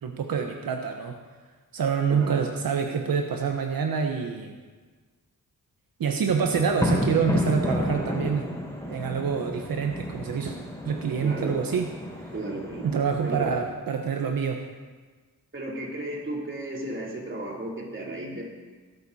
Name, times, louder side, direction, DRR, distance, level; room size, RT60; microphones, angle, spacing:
voice 1, 0.0-1.2 1.7-4.6 6.0-8.5 8.9-10.6 10.8-11.9 12.2-12.3 12.8-14.7, right 6 dB, 85° right, 3 dB, 1.2 m, -26 dB
voice 2, 2.1-2.4 11.2-11.6 12.3-12.9 13.2-13.5 15.5-18.4, right 1 dB, 35° right, -3 dB, 3.8 m, -34 dB
sound 1, 6.3-13.6, left 1 dB, 10° left, 3.9 m, -31 dB
19.5 x 11.5 x 4.3 m, 1.4 s
wide cardioid pair, 100°, 34 cm